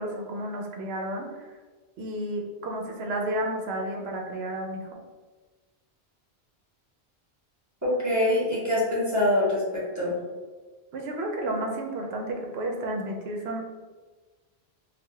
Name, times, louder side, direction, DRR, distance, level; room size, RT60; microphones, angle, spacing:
voice 1, 0.0-1.5 2.0-4.9 10.9-13.6, right 1 dB, 75° right, 1 dB, 0.9 m, -32 dB
voice 2, 7.8-10.2, left 1 dB, 15° right, -7 dB, 1.0 m, -24 dB
3.7 x 2.1 x 3.3 m, 1.3 s
omnidirectional pair, 1.1 m